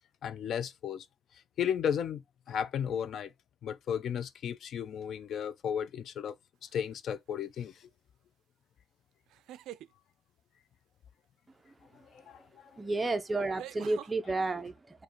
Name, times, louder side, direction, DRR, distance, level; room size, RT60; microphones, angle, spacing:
voice 1, 0.2-1.1 1.6-2.2 2.5-3.3 3.6-6.3 6.6-7.9 12.1-12.7, left 8 dB, 65° left, 0.4 m, -34 dB
sound 1, 6.7-7.1 9.3-9.9 12.2-12.3 13.6-14.1, right 13 dB, 90° right, 0.3 m, -45 dB
voice 2, 12.7-15.0, right 2 dB, 20° right, 0.6 m, -32 dB
4.9 x 2.3 x 2.9 m
cardioid pair, 105°, 0 cm